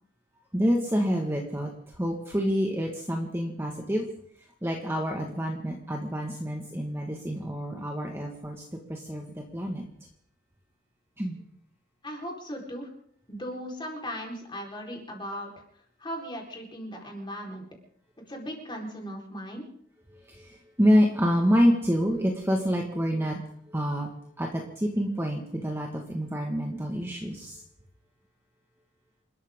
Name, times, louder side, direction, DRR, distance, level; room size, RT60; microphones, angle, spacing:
voice 1, 0.5-1.7 2.0-4.1 4.6-8.6 8.9-9.8 11.2-11.4 20.3-23.4 23.7-24.1 24.4-27.6, equal, 15° right, 1 dB, 1.7 m, -27 dB
voice 2, 12.0-12.9 13.3-15.5 16.0-17.6 18.3-19.7, equal, 25° left, 0 dB, 4.4 m, -37 dB
28.5 x 13.5 x 3.8 m, 0.69 s
head